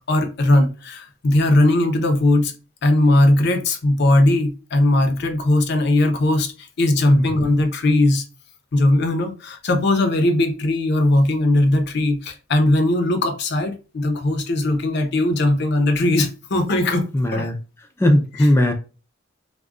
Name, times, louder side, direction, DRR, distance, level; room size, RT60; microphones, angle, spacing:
voice 1, 0.1-2.5 2.8-6.5 6.8-8.2 8.7-17.0 17.3-17.4, left 1 dB, 60° left, 0.6 m, -18 dB
voice 2, 17.1-17.5 18.0-18.7, left 1 dB, 15° left, 0.3 m, -17 dB
2.3 x 2.1 x 3.5 m
head